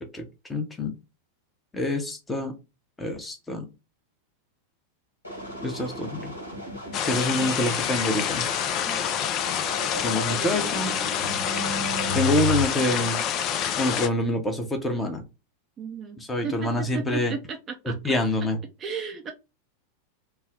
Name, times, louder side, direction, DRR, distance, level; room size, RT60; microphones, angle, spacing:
voice 1, 0.5-0.9 1.7-2.5 3.0-3.7 5.6-6.3 7.0-8.5 10.0-11.0 12.1-13.2 13.8-15.2 16.2-17.3 17.9-18.6, left 1 dB, 10° left, 0.8 m, -26 dB
sound 1, 5.2-12.6, left 3 dB, 80° left, 1.1 m, -34 dB
sound 2, 6.9-14.1, left 9 dB, 35° left, 0.4 m, -27 dB
voice 2, 15.8-16.2 16.4-18.1 18.8-19.3, right 6 dB, 25° right, 0.5 m, -34 dB
3.2 x 2.1 x 3.6 m
figure-of-eight pair, 90°, 0 cm